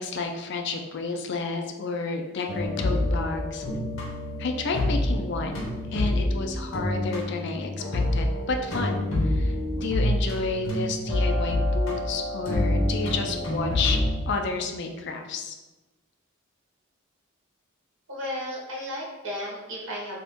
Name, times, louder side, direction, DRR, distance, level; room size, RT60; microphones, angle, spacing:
voice 1, 0.0-3.6 4.4-14.0 14.3-15.6, left 3 dB, 60° left, 4 dB, 0.4 m, -31 dB
sound 1, 2.5-14.2, left 1 dB, 80° left, 0.9 m, -27 dB
voice 2, 18.1-20.2, equal, 65° right, -4 dB, 1.0 m, -34 dB
2.8 x 2.5 x 3.5 m, 1.1 s
head